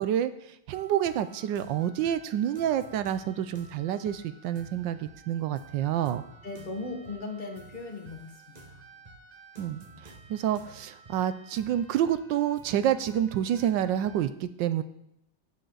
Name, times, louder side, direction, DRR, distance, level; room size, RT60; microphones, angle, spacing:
voice 1, 0.0-6.2 9.6-14.8, right 10 dB, 75° right, 12 dB, 1.2 m, -28 dB
sound 1, 0.7-14.3, right 3 dB, 30° right, 0.9 m, -52 dB
voice 2, 6.4-8.8, left 3 dB, 25° left, 3 dB, 1.3 m, -38 dB
14.0 x 7.4 x 4.0 m, 0.78 s
omnidirectional pair, 2.3 m